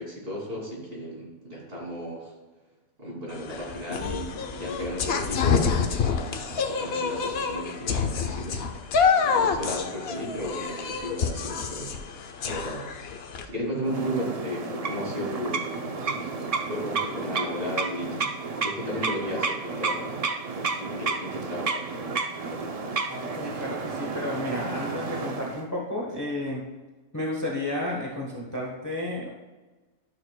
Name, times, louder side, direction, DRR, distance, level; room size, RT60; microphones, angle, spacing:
voice 1, 0.0-2.3 3.0-8.6 9.1-11.9 12.4-12.8 13.4-16.3 16.6-18.3 18.6-20.2 20.8-21.9, equal, 40° right, -4 dB, 2.8 m, -34 dB
sound 1, 3.3-13.5, left 5 dB, 55° left, 0.8 m, -27 dB
sound 2, 13.8-25.7, right 4 dB, 65° right, 0.3 m, -31 dB
voice 2, 23.1-26.7 27.1-29.3, left 1 dB, 15° left, -2 dB, 0.9 m, -32 dB
11.5 x 6.5 x 2.2 m, 1.2 s
omnidirectional pair, 1.4 m